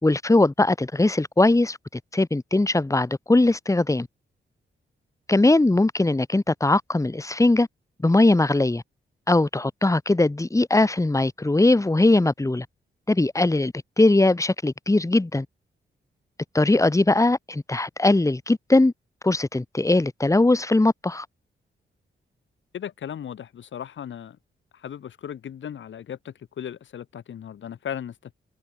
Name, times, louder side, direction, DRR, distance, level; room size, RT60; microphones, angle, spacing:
voice 1, 0.0-1.8 2.1-4.1 5.3-7.7 8.0-8.8 9.3-12.7 13.1-15.5 16.5-18.9 19.2-21.3, left 2 dB, 15° left, 2.9 m, -20 dB
voice 2, 22.7-24.4 24.7-28.3, left 9 dB, 75° left, 4.4 m, -36 dB
open air
cardioid pair, 85°, 20 cm